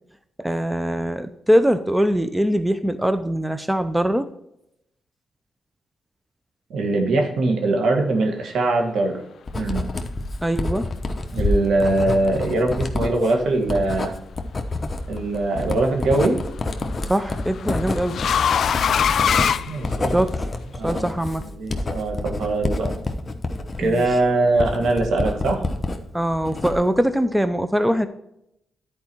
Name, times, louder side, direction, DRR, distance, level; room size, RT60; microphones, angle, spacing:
voice 1, 0.4-4.3 10.4-10.9 17.1-18.2 20.1-20.5 20.8-21.4 23.8-24.0 26.1-28.1, equal, 5° right, 11 dB, 0.6 m, -22 dB
voice 2, 6.7-9.1 9.6-9.8 11.3-14.1 15.1-16.4 19.7-20.2 20.7-21.1 21.6-22.9 23.8-25.6, right 2 dB, 75° right, 3 dB, 1.7 m, -22 dB
Writing, 9.5-26.0 26.3-27.0, left 2 dB, 30° left, 1.0 m, -28 dB
sound 1, 14.5-15.0 16.4-20.4, left 8 dB, 65° left, 0.3 m, -23 dB
10.5 x 4.7 x 4.5 m, 0.80 s
cardioid pair, 85°, 0 cm